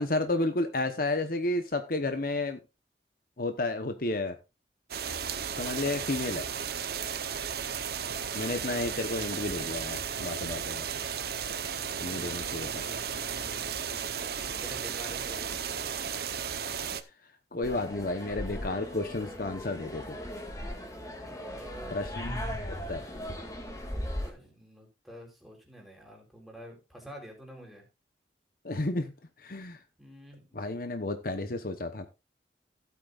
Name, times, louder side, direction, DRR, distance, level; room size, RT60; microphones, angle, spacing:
voice 1, 0.0-2.6 3.4-4.4 5.6-6.4 8.3-10.9 12.0-12.8 17.5-20.2 21.9-22.4 22.9-23.1 28.6-29.1 29.4-29.8 30.5-32.1, left 2 dB, 55° left, 8 dB, 1.0 m, -32 dB
sound 1, 4.9-17.0, right 7 dB, 60° right, 0.9 m, -34 dB
voice 2, 12.0-14.2 14.5-16.1 21.2-22.0 24.2-27.8 30.0-30.6, equal, ahead, 0 dB, 3.8 m, -48 dB
sound 2, 17.6-24.3, left 1 dB, 20° left, 2.4 m, -38 dB
15.5 x 8.5 x 2.5 m, 0.27 s
head